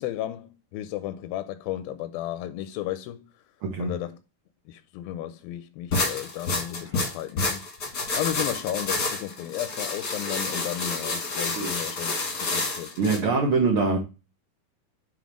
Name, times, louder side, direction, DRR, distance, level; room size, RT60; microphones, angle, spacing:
voice 1, 0.0-3.4 3.8-4.2 4.7-13.2, left 13 dB, 80° left, 2.3 m, -34 dB
sound 1, 5.9-13.2, left 3 dB, 45° left, 1.4 m, -29 dB
voice 2, 13.0-14.0, right 4 dB, 65° right, 1.3 m, -23 dB
7.2 x 3.7 x 6.2 m
omnidirectional pair, 4.5 m